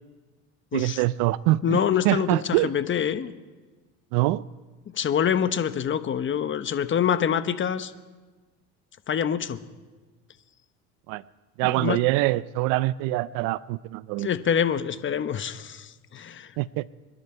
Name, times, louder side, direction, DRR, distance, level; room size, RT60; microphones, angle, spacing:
voice 1, 0.7-2.7 4.1-4.4 11.1-11.2 11.6-14.3 16.6-16.8, right 18 dB, 75° right, 19 dB, 0.5 m, -24 dB
voice 2, 1.6-3.3 4.9-7.9 9.1-9.6 11.6-12.0 14.2-16.5, left 8 dB, 35° left, 11 dB, 1.1 m, -26 dB
26.0 x 11.0 x 4.5 m, 1.3 s
supercardioid pair, 90°, 32 cm